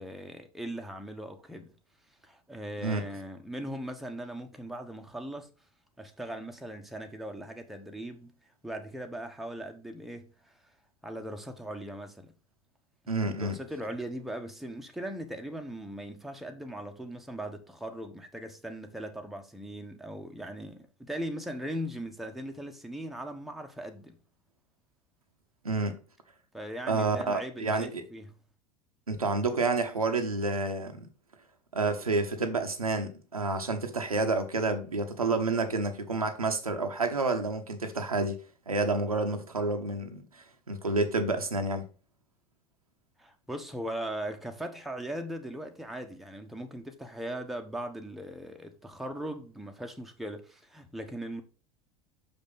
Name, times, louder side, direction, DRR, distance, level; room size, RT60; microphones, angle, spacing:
voice 1, 0.0-1.8 2.2-5.5 6.0-8.3 8.6-10.5 11.0-12.3 13.4-24.2 26.5-28.4 43.2-51.4, right 1 dB, ahead, 1.1 m, -39 dB
voice 2, 13.1-13.6 25.6-26.0 26.9-28.0 29.1-31.1 31.7-38.4 38.7-40.2 40.7-41.8, right 3 dB, 85° right, 0.9 m, -29 dB
6.1 x 5.2 x 4.0 m
figure-of-eight pair, 75°, 18 cm